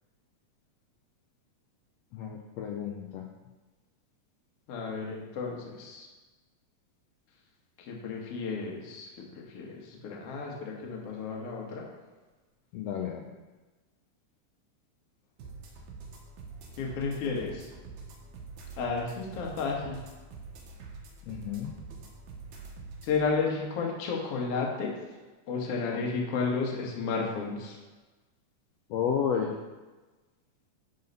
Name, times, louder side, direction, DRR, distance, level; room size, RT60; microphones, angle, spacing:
voice 1, 2.1-3.3 12.7-13.3 21.3-21.7 25.9-26.0 28.9-29.5, left 7 dB, 80° left, 1 dB, 1.5 m, -32 dB
voice 2, 4.7-6.1 7.8-11.9 16.8-17.7 18.8-20.0 23.0-24.9 25.5-27.8, left 4 dB, 55° left, -1 dB, 2.0 m, -32 dB
sound 1, 15.4-23.2, right 4 dB, 90° right, 2.7 m, -46 dB
11.0 x 4.0 x 5.4 m, 1.2 s
omnidirectional pair, 3.6 m